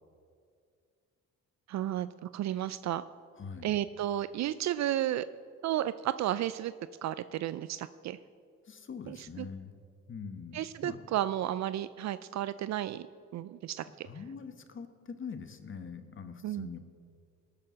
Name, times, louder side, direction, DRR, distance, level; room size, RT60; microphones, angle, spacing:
voice 1, 1.7-3.0 3.6-5.2 5.6-6.7 7.0-8.2 9.1-9.5 10.5-13.1 13.3-14.1 16.4-16.7, right 12 dB, 65° right, 14 dB, 0.4 m, -33 dB
voice 2, 3.4-3.8 8.6-9.7 10.1-11.0 14.0-16.8, left 6 dB, 40° left, 9 dB, 1.3 m, -43 dB
19.0 x 6.8 x 6.3 m, 2.3 s
cardioid pair, 90°, 30 cm